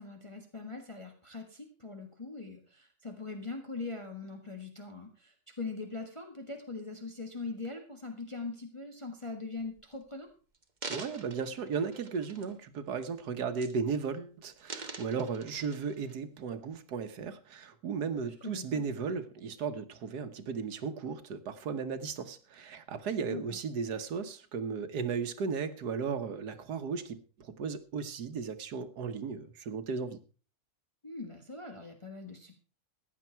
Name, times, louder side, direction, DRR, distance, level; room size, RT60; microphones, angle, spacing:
voice 1, 0.0-10.3 18.4-18.8 23.3-23.6 31.0-32.6, left 3 dB, 20° left, 1.5 m, -41 dB
sound 1, 9.6-9.9 10.5-12.7 13.0-13.3 13.6-14.1 14.4-16.1 16.7-16.8, right 3 dB, 30° right, 1.3 m, -45 dB
voice 2, 10.9-27.2 27.6-30.2, right 5 dB, 85° right, 1.7 m, -35 dB
15.0 x 9.9 x 4.5 m
omnidirectional pair, 1.7 m